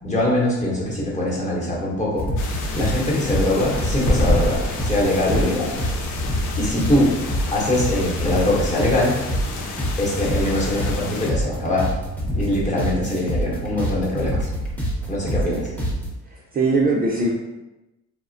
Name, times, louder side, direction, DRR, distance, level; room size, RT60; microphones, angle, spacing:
voice 1, 0.0-2.3 2.7-5.7 6.6-7.2 7.5-9.1 10.0-11.9 12.3-14.5 15.1-15.6, left 1 dB, 25° left, -5 dB, 0.9 m, -22 dB
sound 1, 2.2-16.1, equal, 5° left, 0.7 m, -27 dB
sound 2, 2.4-11.3, left 4 dB, 90° left, 0.5 m, -32 dB
sound 3, 3.6-10.9, left 1 dB, 70° left, 0.9 m, -29 dB
voice 2, 5.3-5.8 12.7-13.2 15.5-15.9 16.2-17.3, right 2 dB, 30° right, -3 dB, 0.4 m, -24 dB
3.0 x 2.0 x 2.5 m, 0.98 s
cardioid pair, 90°, 30 cm